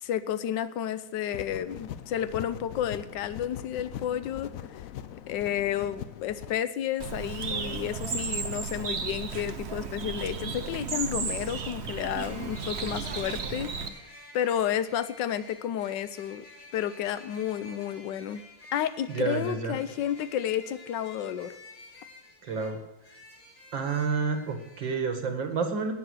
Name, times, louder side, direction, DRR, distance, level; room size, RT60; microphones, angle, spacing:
voice 1, 0.0-4.5 5.3-13.7 14.3-16.5 16.7-18.4 18.7-21.5, left 10 dB, 70° left, 14 dB, 1.3 m, -31 dB
sound 1, 1.3-6.6, left 10 dB, 90° left, 0.7 m, -41 dB
Bird, 7.0-13.9, right 5 dB, 45° right, 0.9 m, -34 dB
sound 2, 12.2-25.0, left 2 dB, 40° left, 4.9 m, -51 dB
voice 2, 19.1-19.8 22.4-22.8 23.7-25.9, right 5 dB, 70° right, 5 dB, 2.4 m, -29 dB
17.5 x 7.2 x 6.3 m, 0.93 s
omnidirectional pair, 2.2 m